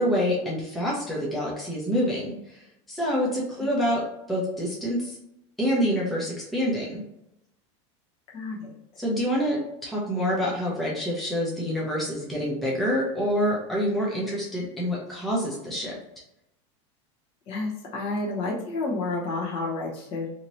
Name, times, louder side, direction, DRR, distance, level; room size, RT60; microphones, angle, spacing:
voice 1, 0.0-5.2 5.6-7.0 9.0-16.0, equal, ahead, -6 dB, 0.5 m, -27 dB
voice 2, 8.3-8.7 17.5-20.3, left 2 dB, 40° left, -5 dB, 1.0 m, -30 dB
2.8 x 2.7 x 2.9 m, 0.83 s
supercardioid pair, 165°, 16 cm